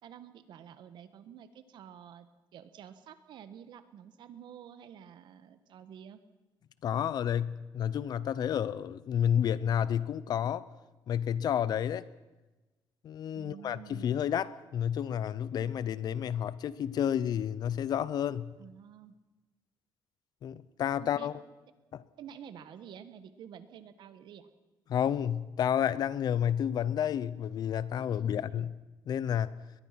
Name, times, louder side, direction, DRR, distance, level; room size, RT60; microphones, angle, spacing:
voice 1, 0.0-2.3 2.5-6.2 13.3-14.1 18.6-19.1 21.0-21.3 22.2-24.5 28.1-28.6, right 9 dB, 70° right, 1.4 m, -50 dB
voice 2, 6.8-10.7 11.1-12.1 13.0-18.5 20.4-21.3 21.9-22.0 24.9-28.7 29.1-29.6, left 9 dB, 55° left, 0.8 m, -30 dB
21.5 x 21.0 x 5.9 m
cardioid pair, 175°, 8 cm